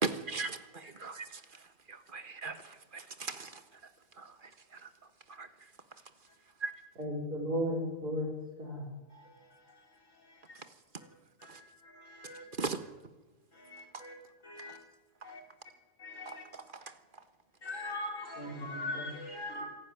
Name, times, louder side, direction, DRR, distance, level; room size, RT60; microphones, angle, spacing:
voice 1, 0.0-3.6 4.2-4.9 5.3-5.5 6.6-6.7 11.5-11.6 12.6-12.9 13.9-14.0 14.7-14.8 16.2-16.9, right 4 dB, 35° right, 1.5 m, -39 dB
voice 2, 7.0-8.3 8.6-8.9 18.4-19.1, equal, 80° right, 4.8 m, -35 dB
voice 3, 9.1-9.8 10.3-10.6 11.4-12.4 13.5-14.1 14.4-14.8 15.2-15.4 16.0-16.4 17.6-19.7, left 2 dB, 55° left, 4.6 m, -42 dB
26.5 x 12.0 x 9.5 m
omnidirectional pair, 1.6 m